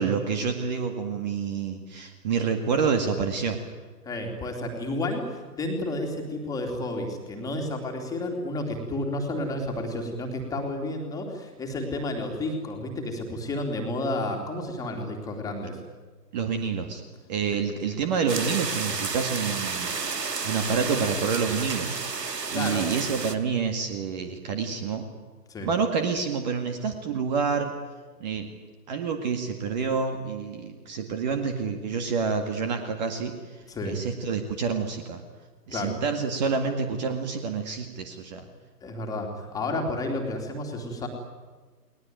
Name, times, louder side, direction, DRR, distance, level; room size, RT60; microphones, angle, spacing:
voice 1, 0.0-3.6 16.3-17.0 17.3-22.0 22.5-25.0 25.6-27.7 28.2-28.5 28.9-33.6 33.8-35.2 35.7-38.5, right 5 dB, 25° right, 6 dB, 2.0 m, -28 dB
voice 2, 4.0-15.8 22.5-22.9 25.5-25.7 33.7-33.9 35.7-36.0 38.8-41.1, left 1 dB, 5° left, 2 dB, 3.0 m, -31 dB
sound 1, 18.3-23.3, right 4 dB, 75° right, 2.4 m, -31 dB
29.5 x 21.0 x 9.3 m, 1.4 s
figure-of-eight pair, 145°, 49 cm